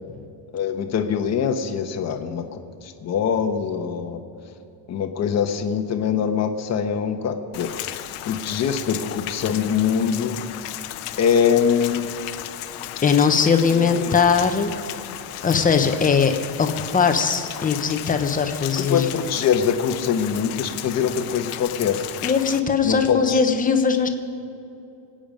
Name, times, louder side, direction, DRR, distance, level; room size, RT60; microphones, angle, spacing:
voice 1, 0.5-4.2 4.9-8.0 8.2-10.4 11.2-12.1 13.7-14.1 18.8-22.0 22.8-23.4, left 7 dB, 35° left, 5 dB, 1.1 m, -23 dB
Rain, 7.5-22.6, left 14 dB, 85° left, 1.0 m, -35 dB
voice 2, 13.0-14.7 15.4-19.1 22.2-24.1, left 6 dB, 15° left, 6 dB, 0.9 m, -20 dB
25.5 x 8.9 x 5.2 m, 2.8 s
cardioid pair, 155°, 49 cm